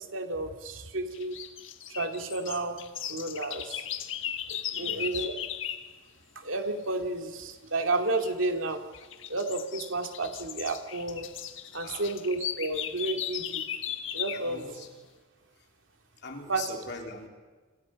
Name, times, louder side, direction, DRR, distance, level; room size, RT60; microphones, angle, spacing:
voice 1, 0.0-1.4 1.9-2.8 3.1-3.9 4.5-5.4 6.4-8.8 9.3-11.3 11.7-13.6 14.1-14.6 16.5-16.7, right 2 dB, 80° right, 5 dB, 2.5 m, -31 dB
sound 1, 1.1-5.9 8.1-8.5 8.9-14.5, left 10 dB, 75° left, 1.4 m, -37 dB
voice 2, 4.7-5.3 11.8-12.1 14.3-14.9 15.5-15.7 16.2-17.3, left 3 dB, 60° left, 2 dB, 3.6 m, -42 dB
28.5 x 27.0 x 5.3 m, 1.4 s
head